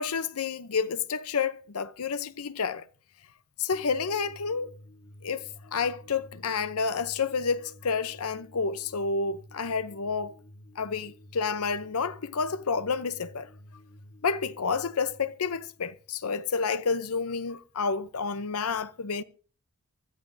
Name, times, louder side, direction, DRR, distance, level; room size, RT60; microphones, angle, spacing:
voice 1, 0.0-2.8 3.6-4.7 5.2-10.3 10.8-13.5 14.2-19.2, left 5 dB, 85° left, 0.7 m, -30 dB
sound 1, 3.7-16.8, left 1 dB, 50° left, 3.0 m, -52 dB
24.5 x 13.5 x 2.7 m
head